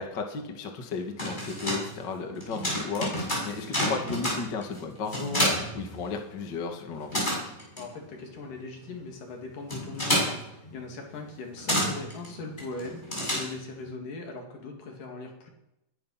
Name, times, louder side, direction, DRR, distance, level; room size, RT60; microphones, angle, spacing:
voice 1, 0.0-7.2, left 4 dB, 40° left, 3 dB, 2.0 m, -34 dB
sound 1, 0.9-6.5 6.8-13.9, equal, 10° left, 6.4 m, -31 dB
voice 2, 7.8-13.0 13.3-15.5, left 3 dB, 65° left, 2 dB, 4.1 m, -40 dB
20.5 x 11.0 x 5.8 m, 0.87 s
omnidirectional pair, 4.1 m